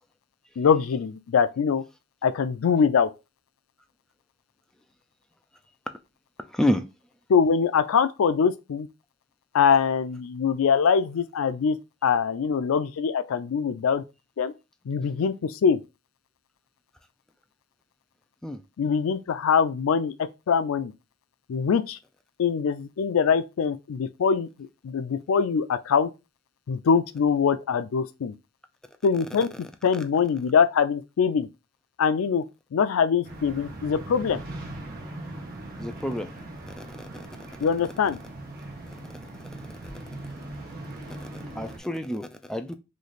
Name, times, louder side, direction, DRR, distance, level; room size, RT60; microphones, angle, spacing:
voice 1, 0.6-1.8 2.2-3.1 7.3-8.9 9.5-11.8 12.0-14.0 14.4-14.5 14.9-15.8 18.8-20.9 21.5-22.0 22.4-24.5 24.8-26.1 26.7-28.3 29.0-29.5 29.8-31.5 32.0-32.4 32.7-34.4 37.6-38.2, left 6 dB, 80° left, 0.4 m, -23 dB
voice 2, 6.5-6.8 18.4-18.6 35.8-36.3 36.7-37.3 39.1-39.2 39.8-39.9 41.1-42.7, left 1 dB, 5° left, 0.3 m, -29 dB
sound 1, 33.2-41.8, right 1 dB, 45° right, 0.7 m, -40 dB
3.2 x 2.5 x 3.9 m
head